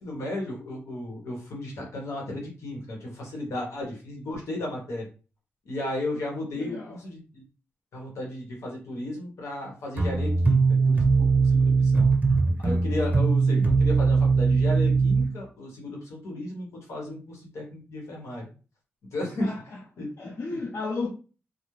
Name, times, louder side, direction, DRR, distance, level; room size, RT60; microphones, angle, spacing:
voice 1, 0.0-5.0 5.6-7.4 7.9-12.1 12.6-18.5 19.1-19.5 20.0-20.6, left 1 dB, 90° left, 0.9 m, -34 dB
voice 2, 6.5-7.0 19.4-21.1, left 3 dB, 60° left, 0.5 m, -34 dB
sound 1, 10.0-15.3, right 4 dB, 35° right, 0.6 m, -21 dB
2.3 x 2.0 x 3.0 m
cardioid pair, 75°, 5 cm